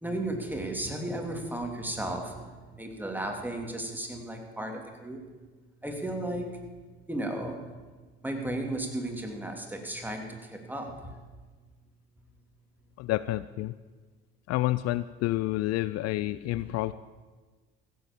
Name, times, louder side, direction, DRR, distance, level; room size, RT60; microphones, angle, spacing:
voice 1, 0.0-5.2 5.8-6.6 7.1-7.6 8.2-11.2 16.6-16.7, right 1 dB, 5° right, 2 dB, 2.8 m, -34 dB
voice 2, 13.0-13.7 14.5-16.9, left 17 dB, 55° left, 15 dB, 0.4 m, -29 dB
15.5 x 7.8 x 7.3 m, 1.4 s
hypercardioid pair, 60°, 31 cm